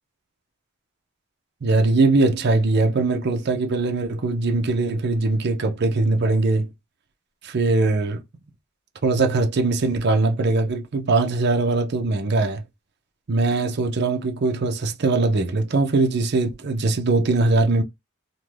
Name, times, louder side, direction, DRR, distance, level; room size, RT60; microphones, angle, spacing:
voice 1, 1.6-6.7 7.4-8.2 9.0-12.6 13.3-17.8, right 3 dB, 55° right, 0.5 m, -21 dB
2.5 x 2.2 x 3.1 m
head